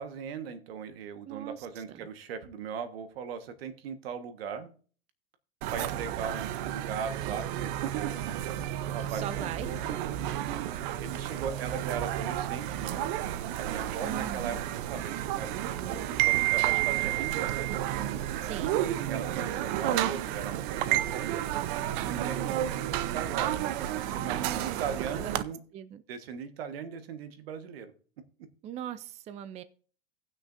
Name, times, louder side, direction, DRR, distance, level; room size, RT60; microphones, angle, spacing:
voice 1, 0.0-4.7 5.7-8.2 8.9-9.8 11.0-13.1 13.6-15.5 15.9-17.6 18.0-18.3 19.1-21.4 22.1-25.6 26.1-27.9, right 7 dB, 75° right, 9 dB, 1.5 m, -39 dB
voice 2, 1.3-2.1 9.1-9.7 14.0-14.6 18.4-18.8 22.1-22.7 24.3-24.8 25.2-25.4 25.7-26.0 28.6-29.6, right 10 dB, 20° right, 13 dB, 0.4 m, -40 dB
sound 1, 5.6-25.4, right 13 dB, 55° right, 0.8 m, -31 dB
18.0 x 6.3 x 2.6 m, 0.41 s
supercardioid pair, 125°, 30 cm